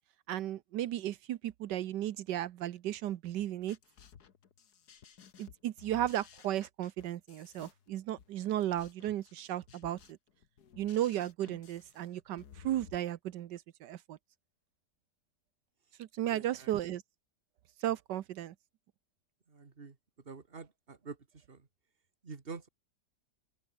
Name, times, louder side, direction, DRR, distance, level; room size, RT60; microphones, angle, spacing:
voice 1, 0.3-3.8 5.4-10.2 10.8-14.2 16.0-17.0 17.8-18.5, right 12 dB, 85° right, 1.4 m, -35 dB
sound 1, 3.4-13.0, left 7 dB, 65° left, 2.0 m, -56 dB
voice 2, 16.3-16.7 19.5-20.0 20.3-21.2 21.5-21.6 22.2-22.7, right 4 dB, 35° right, 2.1 m, -46 dB
open air
omnidirectional pair, 1.8 m